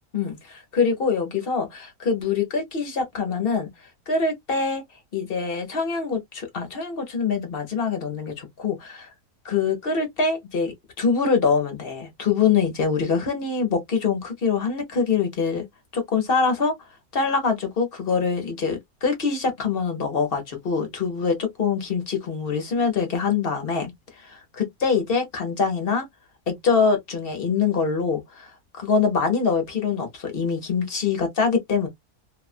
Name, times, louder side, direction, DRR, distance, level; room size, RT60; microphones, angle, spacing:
voice 1, 0.1-3.7 4.1-4.8 5.1-9.1 9.4-15.7 15.9-16.7 17.1-26.1 26.5-28.5 28.8-31.9, left 5 dB, 45° left, 1.0 m, -24 dB
2.7 x 2.3 x 2.4 m
omnidirectional pair, 1.6 m